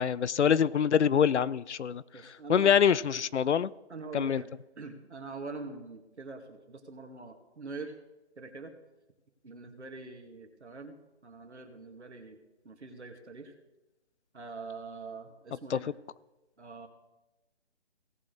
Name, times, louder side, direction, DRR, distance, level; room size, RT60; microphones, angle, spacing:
voice 1, 0.0-2.0 2.5-3.7 4.1-4.4 15.7-15.8, left 8 dB, 85° left, 20 dB, 0.6 m, -25 dB
voice 2, 2.1-2.8 3.9-4.5 4.8-7.9 8.4-8.7 9.4-11.0 11.2-13.5 14.3-15.9 16.6-16.9, right 3 dB, 90° right, 5 dB, 2.0 m, -44 dB
18.0 x 6.4 x 3.9 m, 1.0 s
hypercardioid pair, 160°, 33 cm